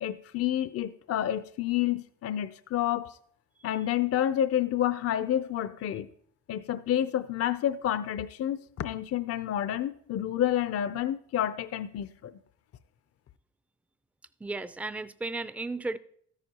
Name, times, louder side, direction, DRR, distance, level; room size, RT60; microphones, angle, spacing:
voice 1, 0.0-3.2 3.6-6.1 6.5-12.3, left 11 dB, 50° left, 0.5 m, -29 dB
voice 2, 14.4-16.0, right 3 dB, 5° right, 0.4 m, -34 dB
13.5 x 9.7 x 2.9 m
cardioid pair, 90°, 30 cm